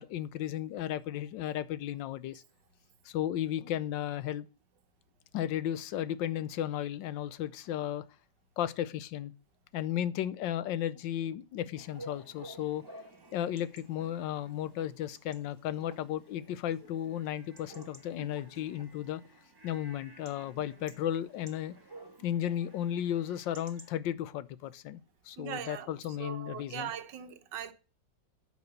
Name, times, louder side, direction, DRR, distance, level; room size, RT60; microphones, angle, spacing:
voice 1, 0.0-2.4 3.0-4.5 5.3-8.0 8.6-9.3 9.7-12.8 13.3-19.2 19.6-21.7 22.2-26.9, left 11 dB, 85° left, 1.4 m, -34 dB
Chatter / Bark / Livestock farm animals working animals, 11.8-23.9, right 2 dB, 15° right, 1.2 m, -53 dB
voice 2, 25.4-25.9 26.2-27.7, right 9 dB, 75° right, 1.6 m, -40 dB
9.3 x 4.9 x 6.7 m
omnidirectional pair, 1.9 m